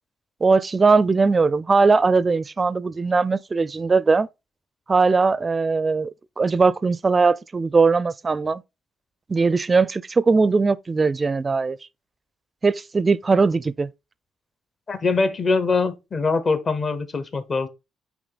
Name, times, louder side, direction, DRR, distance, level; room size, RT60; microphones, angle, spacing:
voice 1, 0.4-4.3 4.9-8.6 9.3-11.8 12.6-13.9, right 4 dB, 30° right, 0.4 m, -20 dB
voice 2, 14.9-17.7, left 4 dB, 40° left, 1.0 m, -23 dB
8.5 x 3.1 x 3.9 m
cardioid pair, 90°, 0 cm